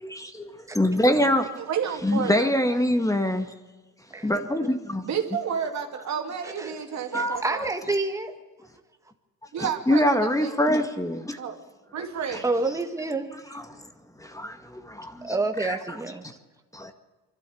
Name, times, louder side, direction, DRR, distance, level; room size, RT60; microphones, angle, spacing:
voice 1, 0.0-1.5 2.0-3.5 4.2-5.0 7.1-7.7 9.6-11.4 12.3-12.4 13.5-13.9 14.2-15.4 15.6-15.8 16.7-16.9, left 1 dB, 10° left, 2.0 m, -25 dB
voice 2, 1.6-2.5 5.0-7.7 9.5-10.5 11.4-11.6 11.9-12.5, right 7 dB, 65° right, 2.6 m, -31 dB
voice 3, 6.4-6.7 7.1-8.3 12.4-13.6 15.1-16.2, right 3 dB, 10° right, 1.8 m, -28 dB
24.5 x 13.0 x 8.6 m
cardioid pair, 90°, 30 cm